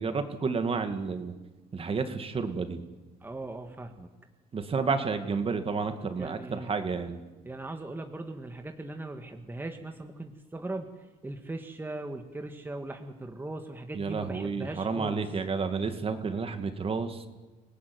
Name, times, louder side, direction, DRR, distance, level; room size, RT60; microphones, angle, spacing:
voice 1, 0.0-1.3 1.7-2.8 4.5-7.2 13.9-17.2, right 4 dB, 35° right, 8 dB, 2.3 m, -31 dB
voice 2, 3.2-4.1 6.1-6.7 7.5-10.9 11.2-15.2, right 2 dB, 10° right, 5 dB, 1.9 m, -39 dB
27.0 x 18.0 x 9.6 m, 1.2 s
cardioid pair, 110°, 17 cm